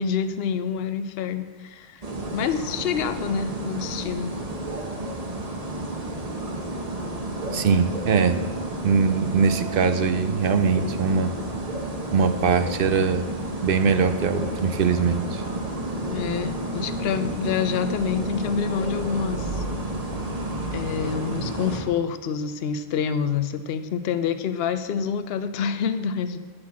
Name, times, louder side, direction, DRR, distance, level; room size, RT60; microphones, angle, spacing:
voice 1, 0.0-2.0 2.3-4.3 16.0-19.6 20.7-26.4, left 7 dB, 75° left, 11 dB, 0.8 m, -27 dB
sound 1, 2.0-21.8, right 1 dB, 35° right, 1.2 m, -31 dB
voice 2, 7.5-8.4 8.8-11.3 12.1-13.3 13.6-15.4, right 5 dB, 65° right, 10 dB, 0.7 m, -22 dB
7.9 x 6.0 x 7.2 m, 1.3 s
omnidirectional pair, 1.1 m